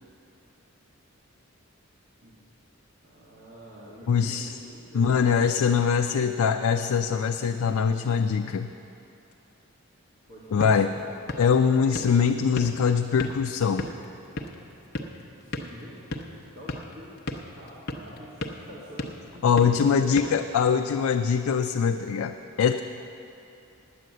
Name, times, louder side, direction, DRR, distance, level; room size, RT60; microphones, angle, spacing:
voice 1, 3.0-6.1 10.3-11.2 15.3-20.3, equal, 55° right, -9 dB, 2.0 m, -46 dB
voice 2, 4.1-4.5 4.9-8.7 10.5-10.9 11.4-13.9 19.4-22.8, left 6 dB, 75° left, 5 dB, 0.4 m, -23 dB
sound 1, 10.3-21.1, left 1 dB, 50° left, 0.7 m, -38 dB
9.4 x 9.2 x 7.7 m, 2.9 s
head